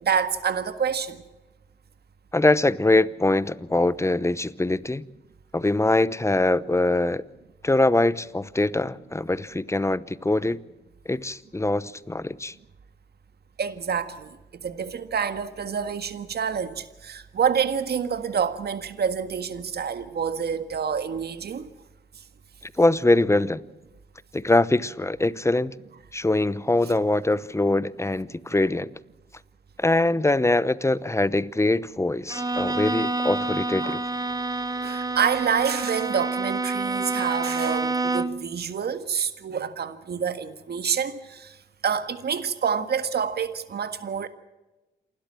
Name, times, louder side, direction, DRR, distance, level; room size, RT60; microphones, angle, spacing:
voice 1, 0.0-1.2 13.6-21.7 33.8-34.0 34.8-41.6 41.8-44.3, right 7 dB, 60° right, 1.7 m, -27 dB
voice 2, 2.3-5.1 5.5-7.2 7.6-10.6 11.1-12.5 22.6-23.6 24.3-25.8 26.1-28.9 29.8-34.0, left 2 dB, 15° left, 0.8 m, -23 dB
Bowed string instrument, 32.3-38.5, right 3 dB, 20° right, 1.0 m, -28 dB
28.0 x 12.5 x 7.6 m
supercardioid pair, 55°, 19 cm